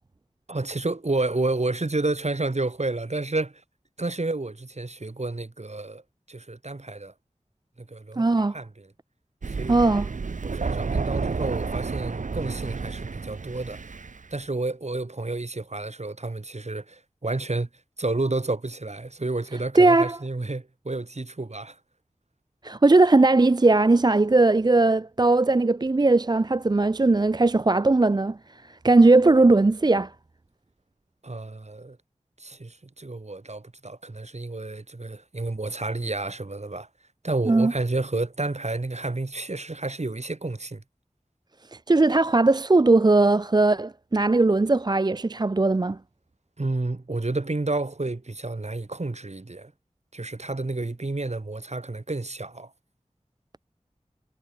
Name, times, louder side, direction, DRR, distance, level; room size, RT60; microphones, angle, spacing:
voice 1, 0.5-3.6 4.0-6.0 6.3-7.1 7.8-8.9 9.5-9.8 10.4-13.8 14.3-17.7 18.0-21.8 31.2-32.0 32.4-36.9 37.2-40.8 46.6-49.7 50.1-52.7, right 2 dB, 60° right, 6.2 m, -30 dB
voice 2, 8.2-8.6 9.7-10.1 19.8-20.2 22.6-28.4 28.6-30.1 37.5-37.7 41.7-46.0, right 2 dB, 35° right, 0.5 m, -19 dB
Thunder, 9.4-14.2, right 4 dB, 85° right, 0.8 m, -30 dB
wide cardioid pair, 55°, 13 cm